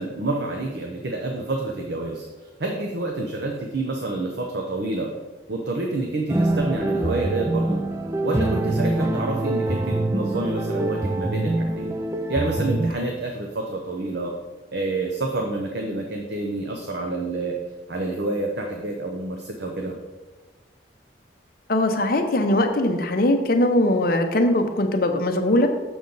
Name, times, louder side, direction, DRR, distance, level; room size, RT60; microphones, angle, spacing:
voice 1, 0.0-5.1 5.5-7.8 8.2-12.0 12.3-14.3 14.7-17.6 17.9-19.9, right 2 dB, 60° right, 1 dB, 0.7 m, -28 dB
sound 1, 6.3-12.9, right 2 dB, 15° right, 0.3 m, -24 dB
voice 2, 21.7-25.7, left 1 dB, 50° left, 5 dB, 0.7 m, -20 dB
6.9 x 6.2 x 3.9 m, 1.2 s
head